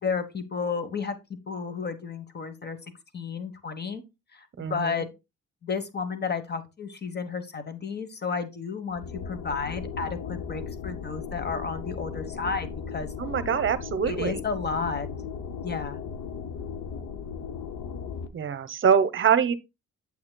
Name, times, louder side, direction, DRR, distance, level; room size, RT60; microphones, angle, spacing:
voice 1, 0.0-1.2 1.5-2.8 3.1-4.0 4.3-5.1 5.6-13.1 14.1-15.1 15.6-16.0, left 5 dB, 35° left, 1.3 m, -32 dB
voice 2, 4.6-5.1 13.2-14.4 18.3-19.5, right 7 dB, 40° right, 0.8 m, -24 dB
sound 1, 8.9-18.3, left 6 dB, 65° left, 0.9 m, -36 dB
8.5 x 7.1 x 2.3 m
cardioid pair, 90°, 30 cm